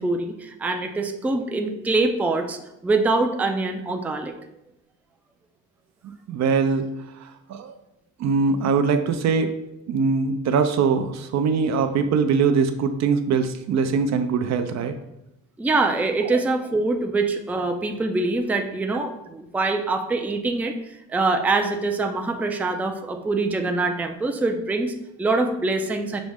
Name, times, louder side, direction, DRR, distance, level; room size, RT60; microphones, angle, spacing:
voice 1, 0.0-4.3 15.6-26.2, right 3 dB, 5° right, 4 dB, 0.3 m, -24 dB
voice 2, 6.3-6.9 7.2-7.7 8.2-9.6 9.9-15.0, right 5 dB, 65° right, 8 dB, 0.5 m, -22 dB
6.0 x 2.1 x 3.5 m, 0.87 s
cardioid pair, 90°, 30 cm